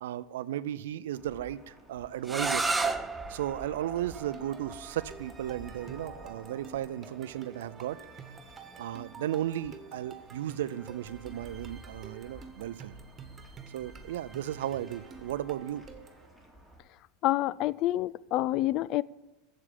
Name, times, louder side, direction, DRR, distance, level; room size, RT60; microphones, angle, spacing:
voice 1, 0.0-2.7 3.3-8.0 8.8-12.9 13.7-15.8, right 12 dB, 75° right, 0.5 m, -35 dB
sound 1, 1.1-16.8, equal, 15° left, 2.4 m, -52 dB
sound 2, 2.2-8.0, right 3 dB, 10° right, 0.7 m, -35 dB
sound 3, 4.0-16.3, right 6 dB, 30° right, 1.4 m, -50 dB
voice 2, 17.2-19.0, left 15 dB, 50° left, 0.3 m, -27 dB
7.4 x 7.4 x 8.4 m
hypercardioid pair, 90°, 0 cm